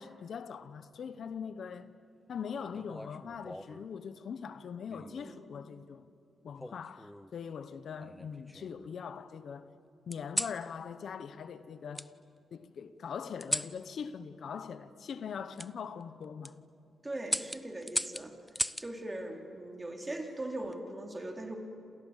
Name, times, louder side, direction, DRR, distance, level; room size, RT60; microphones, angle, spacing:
voice 1, 0.0-1.9 2.3-6.1 6.4-9.7 10.1-12.1 12.5-16.6, left 6 dB, 65° left, 1.1 m, -42 dB
sound 1, 2.7-3.9 4.9-5.3 6.6-7.3 8.0-8.9 10.1-10.6 11.9-12.1 13.4-13.8 15.6-15.7 16.2-16.5 17.3-18.9 20.4-20.8, equal, 5° left, 0.6 m, -37 dB
voice 2, 5.0-5.5 17.0-18.4 18.8-21.6, right 1 dB, 20° right, 3.7 m, -40 dB
29.0 x 28.0 x 7.5 m
cardioid pair, 105°, 0 cm